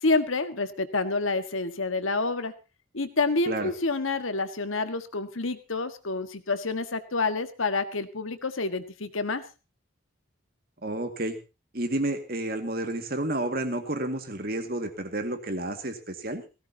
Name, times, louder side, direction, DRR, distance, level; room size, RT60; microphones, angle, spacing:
voice 1, 0.0-2.5 2.9-9.4, left 3 dB, 80° left, 9 dB, 1.6 m, -28 dB
voice 2, 10.8-11.4 11.7-16.4, right 1 dB, 45° right, 7 dB, 2.1 m, -30 dB
18.0 x 16.5 x 2.9 m, 0.30 s
head